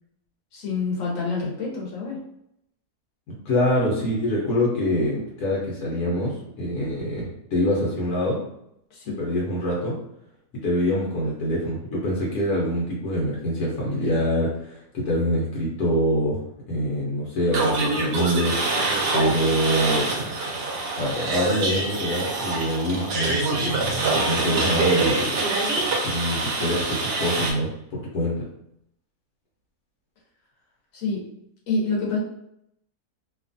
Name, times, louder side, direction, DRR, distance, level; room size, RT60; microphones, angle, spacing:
voice 1, 0.5-2.2 8.9-9.2 30.9-31.2 31.7-32.2, left 3 dB, 60° left, -3 dB, 1.2 m, -27 dB
voice 2, 3.3-8.4 9.2-10.0 10.6-16.4 16.7-18.6 19.1-20.1 21.0-25.4 26.0-28.4, equal, 85° left, -4 dB, 1.3 m, -25 dB
sound 1, 17.5-27.5, right 3 dB, 60° right, 0.7 m, -25 dB
2.9 x 2.4 x 2.5 m, 0.77 s
omnidirectional pair, 1.6 m